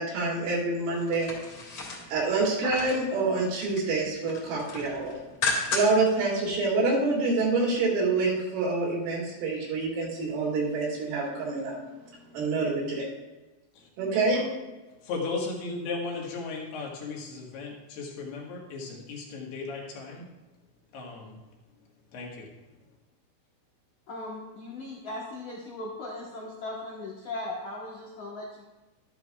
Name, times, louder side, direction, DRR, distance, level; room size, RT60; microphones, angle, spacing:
voice 1, 0.0-1.4 2.1-5.2 5.7-11.8 12.3-13.1 14.0-14.4, right 3 dB, 75° right, -4 dB, 4.7 m, -26 dB
sound 1, 1.0-3.1 3.4-3.9 4.3-6.1 6.5-6.6, left 3 dB, 45° left, 2.3 m, -33 dB
voice 2, 15.0-20.3 20.9-21.3 22.1-22.5, left 4 dB, 65° left, -2 dB, 3.2 m, -36 dB
voice 3, 24.1-28.7, left 2 dB, 90° left, -5 dB, 1.6 m, -38 dB
12.5 x 11.0 x 2.3 m, 1.1 s
omnidirectional pair, 5.7 m